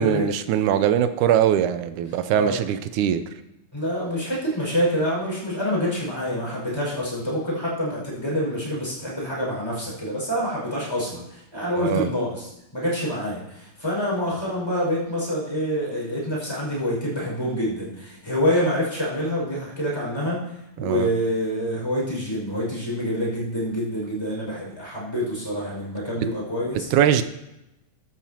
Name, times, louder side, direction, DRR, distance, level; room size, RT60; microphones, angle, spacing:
voice 1, 0.0-3.3 11.7-12.1 20.8-21.1 26.9-27.2, right 10 dB, 80° right, 11 dB, 2.1 m, -21 dB
voice 2, 3.7-26.9, equal, 10° left, -4 dB, 5.5 m, -26 dB
15.0 x 12.5 x 2.9 m, 0.90 s
omnidirectional pair, 3.6 m